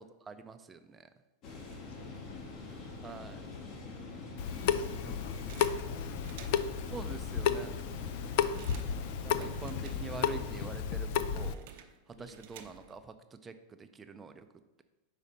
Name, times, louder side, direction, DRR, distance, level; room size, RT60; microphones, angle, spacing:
voice 1, 0.3-1.0 3.0-3.4 6.9-7.7 9.2-11.7 12.2-13.1 13.4-13.5 13.9-14.4, right 5 dB, 20° right, 9 dB, 0.4 m, -45 dB
sound 1, 1.4-10.8, left 3 dB, 45° left, 1.2 m, -45 dB
voice 2, 1.9-2.6 3.3-3.4 3.8-4.3 4.6-7.1 8.3-8.6 12.2-12.4, left 4 dB, 90° left, 6 dB, 0.9 m, -54 dB
Water tap faucet / Sink (filling or washing) / Drip, 4.4-11.5, left 8 dB, 60° left, 0.3 m, -33 dB
sound 2, 5.5-6.8 7.5-7.6 7.8-10.5 10.7-13.1, right 9 dB, 65° right, 0.6 m, -54 dB
5.4 x 4.1 x 5.2 m, 1.1 s
hypercardioid pair, 125°, 0 cm